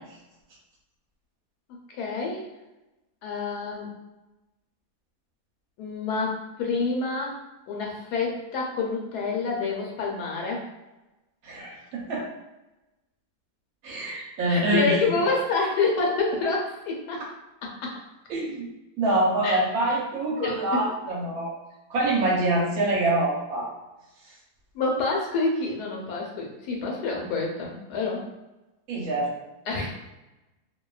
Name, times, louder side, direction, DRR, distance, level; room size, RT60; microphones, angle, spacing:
voice 1, 1.9-2.5 3.2-3.9 5.8-10.7 14.5-17.3 17.6-17.9 19.4-19.6 20.4-20.8 24.7-28.2 29.7-29.9, left 3 dB, 80° left, 0 dB, 1.2 m, -28 dB
voice 2, 11.4-12.3 13.8-15.0 18.3-18.7 19.0-21.5 21.9-23.7 28.9-29.3, right 1 dB, 70° right, -3 dB, 1.1 m, -25 dB
2.7 x 2.2 x 2.3 m, 1.0 s
omnidirectional pair, 1.7 m